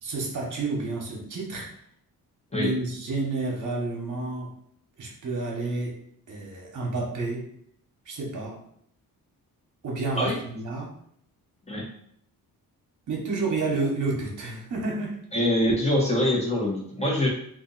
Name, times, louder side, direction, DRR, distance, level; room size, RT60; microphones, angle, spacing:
voice 1, 0.0-1.7 2.5-4.5 5.0-5.9 6.3-7.4 8.1-8.6 9.8-10.9 13.1-15.2, right 3 dB, 55° right, -1 dB, 1.1 m, -30 dB
voice 2, 15.3-17.3, left 1 dB, 15° left, -3 dB, 1.0 m, -24 dB
2.6 x 2.5 x 3.9 m, 0.66 s
cardioid pair, 70°, 37 cm